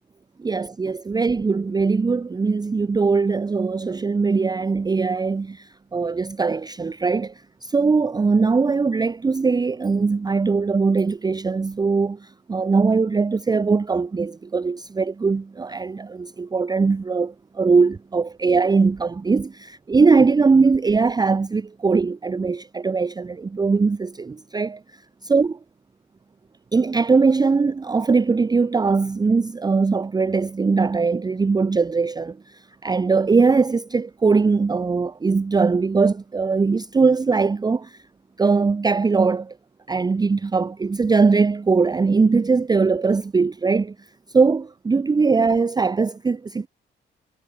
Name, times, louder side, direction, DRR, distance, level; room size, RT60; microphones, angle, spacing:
voice 1, 0.4-7.3 7.6-24.8 25.2-25.6 26.7-38.0 38.4-39.5 39.9-43.9 44.3-46.7, right 4 dB, 20° right, 0.6 m, -20 dB
cardioid pair, 90°, 20 cm